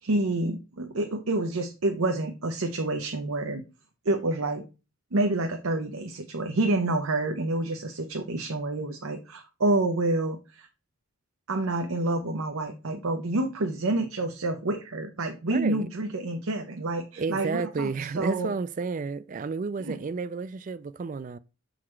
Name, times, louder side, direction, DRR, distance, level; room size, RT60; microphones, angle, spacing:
voice 1, 0.0-3.6 4.1-4.6 5.1-10.7 11.5-17.9 18.2-18.5 19.9-20.0, right 2 dB, 85° right, 0.7 m, -28 dB
voice 2, 15.5-15.9 17.2-21.4, right 4 dB, 40° right, 0.3 m, -31 dB
6.3 x 4.0 x 4.4 m
head